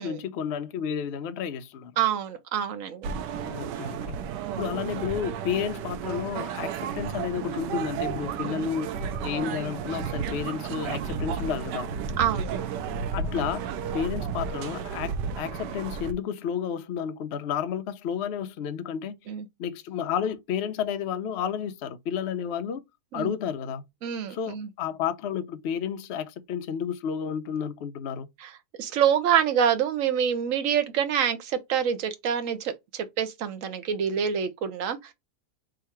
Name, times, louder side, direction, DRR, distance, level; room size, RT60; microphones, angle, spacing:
voice 1, 0.0-2.0 3.4-4.2 4.6-8.9 9.2-11.9 13.1-19.2 19.6-22.8 23.1-23.8 24.3-28.3, left 8 dB, 60° left, 0.6 m, -31 dB
voice 2, 2.0-3.1 4.5-4.7 8.4-8.7 12.2-12.5 19.3-19.5 23.1-23.3 24.0-24.7 28.4-28.5 28.8-35.1, right 8 dB, 60° right, 1.1 m, -26 dB
sound 1, 3.0-16.1, right 6 dB, 85° right, 1.3 m, -33 dB
3.7 x 2.8 x 4.5 m
omnidirectional pair, 1.8 m